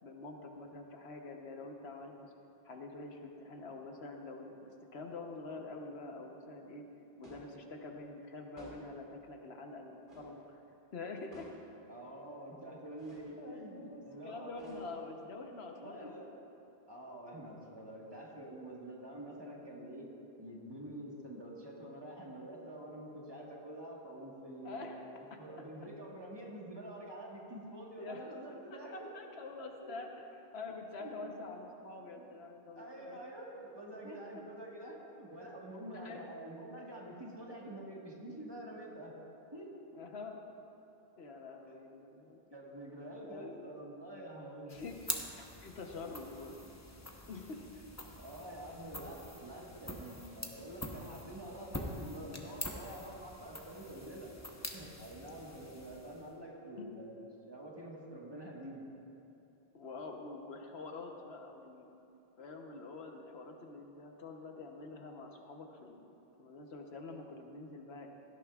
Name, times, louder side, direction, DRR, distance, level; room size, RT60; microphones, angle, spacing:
voice 1, 0.0-2.3 2.6-6.8 7.2-10.6 10.9-11.5 13.4-16.2 24.6-25.0 25.3-25.4 28.0-28.2 28.7-33.2 34.0-34.2 35.9-36.3 39.9-40.4 41.2-42.4 43.2-43.7 44.7-46.6 47.3-47.7 56.8-56.9 59.7-61.9 62.4-66.1 66.4-68.1, left 3 dB, 85° left, 3 dB, 1.2 m, -46 dB
sound 1, 7.2-7.6 8.6-9.0 10.1-10.4 11.3-11.7 13.0-13.3 14.5-15.2, right 1 dB, 55° right, 2.3 m, -55 dB
voice 2, 11.9-14.9 15.8-16.3 16.9-20.1 20.4-24.9 25.2-29.1 29.8-29.9 31.0-31.3 32.0-32.4 32.7-39.1 39.5-39.7 41.7-41.9 42.5-44.8 48.2-54.3 54.7-58.8, right 1 dB, 25° right, -4 dB, 1.5 m, -47 dB
sound 2, 44.7-56.4, left 1 dB, 15° left, 0.8 m, -45 dB
17.0 x 12.5 x 2.4 m, 2.9 s
omnidirectional pair, 1.0 m